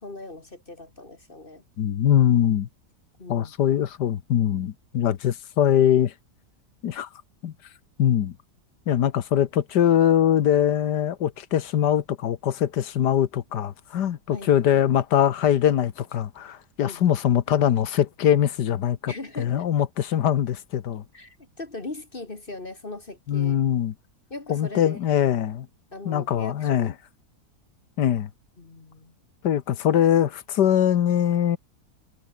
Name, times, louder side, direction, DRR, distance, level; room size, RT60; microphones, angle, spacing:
voice 1, 0.0-1.6 3.2-3.5 14.3-14.5 16.8-17.2 19.1-19.7 21.1-23.6 24.3-25.0 25.9-26.9 28.6-29.1, left 2 dB, 35° left, 2.2 m, -39 dB
voice 2, 1.8-2.7 3.3-6.1 6.8-7.1 7.4-7.5 8.0-8.4 8.9-21.0 23.3-23.9 24.5-25.7 26.1-26.9 28.0-28.3 29.4-31.6, left 10 dB, 85° left, 1.7 m, -22 dB
omnidirectional pair, 1.8 m